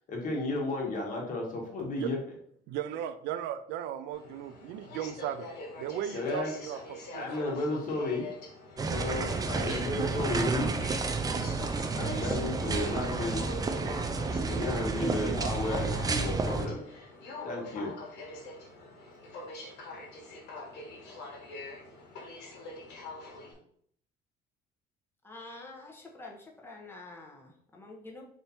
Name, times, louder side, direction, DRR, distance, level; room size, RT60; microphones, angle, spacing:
voice 1, 0.1-2.2 6.1-6.5 7.1-8.2 8.8-10.7 11.9-13.4 14.3-16.8 17.4-17.9, left 2 dB, 50° left, -1 dB, 1.4 m, -33 dB
voice 2, 2.7-5.5 5.8-7.3, right 10 dB, 85° right, 11 dB, 0.4 m, -36 dB
Aircraft, 4.1-23.5, left 2 dB, 80° left, 1.3 m, -44 dB
sound 1, 8.8-16.7, right 4 dB, 20° right, 0.4 m, -31 dB
voice 3, 25.2-28.3, left 2 dB, 15° left, 0 dB, 0.9 m, -47 dB
3.4 x 2.8 x 4.2 m, 0.64 s
cardioid pair, 110°, 17 cm